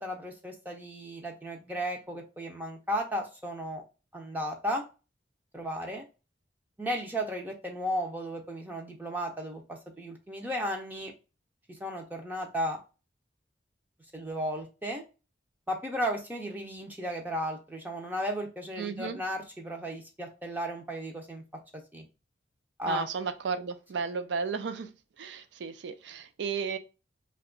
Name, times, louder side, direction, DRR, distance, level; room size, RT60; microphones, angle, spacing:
voice 1, 0.0-3.8 4.1-4.8 5.5-6.0 6.8-9.6 10.0-11.1 11.8-12.8 14.1-15.0 15.7-21.4 21.9-22.1 22.8-23.1, equal, 10° right, 0.4 m, -34 dB
voice 2, 18.8-19.2 22.9-26.8, right 5 dB, 75° right, 0.4 m, -34 dB
2.8 x 2.3 x 3.6 m
head